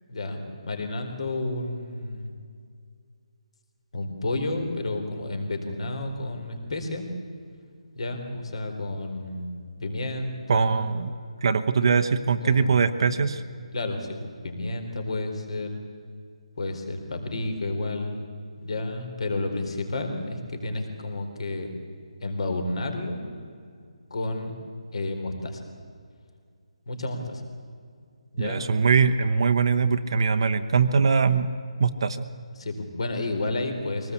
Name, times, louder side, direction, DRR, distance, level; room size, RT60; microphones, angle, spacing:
voice 1, 0.1-2.3 3.9-7.1 7.9-10.9 12.4-13.3 13.7-14.2 14.4-15.8 16.6-18.3 18.6-21.7 22.2-23.2 24.1-24.5 24.9-25.6 26.9-27.4 28.3-28.7 32.6-34.1, left 2 dB, 55° left, 5 dB, 4.2 m, -31 dB
voice 2, 10.5-11.1 11.4-13.4 28.4-31.5 31.8-32.3, right 5 dB, 45° right, 7 dB, 0.9 m, -22 dB
23.0 x 19.0 x 8.3 m, 2.2 s
hypercardioid pair, 170°, 4 cm